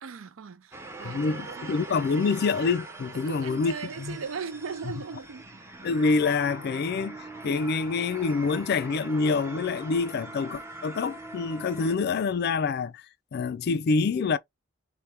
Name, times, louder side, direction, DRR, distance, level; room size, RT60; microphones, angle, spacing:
voice 1, 0.0-2.1 3.1-5.6, right 5 dB, 70° right, 0.5 m, -39 dB
sound 1, 0.7-12.0, right 2 dB, 15° right, 0.6 m, -42 dB
voice 2, 1.0-4.2 5.8-13.0 13.3-14.4, left 4 dB, 50° left, 0.3 m, -26 dB
3.4 x 2.2 x 4.2 m
head